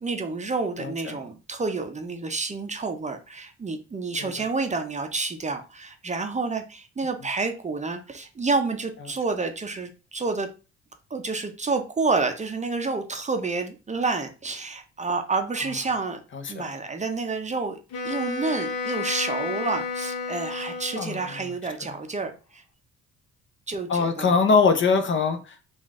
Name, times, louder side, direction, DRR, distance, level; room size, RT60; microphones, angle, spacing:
voice 1, 0.0-10.5 11.1-16.2 16.5-17.8 18.0-22.6 23.7-24.4, right 3 dB, 25° right, 6 dB, 0.6 m, -29 dB
voice 2, 16.3-16.7 21.0-21.2 23.9-25.6, left 5 dB, 40° left, 8 dB, 0.7 m, -22 dB
Wind instrument woodwind instrument, 17.9-21.5, left 4 dB, 85° left, 1.1 m, -32 dB
3.8 x 2.5 x 3.6 m, 0.33 s
cardioid pair, 90°, 30 cm